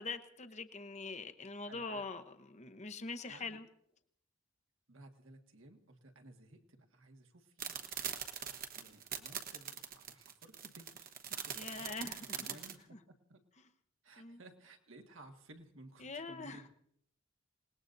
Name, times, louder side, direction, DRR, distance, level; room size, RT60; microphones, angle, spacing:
voice 1, 0.0-3.7 11.5-12.6 12.9-13.0 14.2-14.4 16.0-16.7, left 3 dB, 35° left, 8 dB, 0.9 m, -44 dB
voice 2, 1.7-2.1 3.2-3.6 4.9-12.1 12.3-13.0 13.3-13.4 14.0-16.7, right 2 dB, 75° right, 4 dB, 1.7 m, -57 dB
sound 1, 7.6-12.7, right 9 dB, 45° right, 1.1 m, -42 dB
28.0 x 19.5 x 2.7 m, 0.69 s
head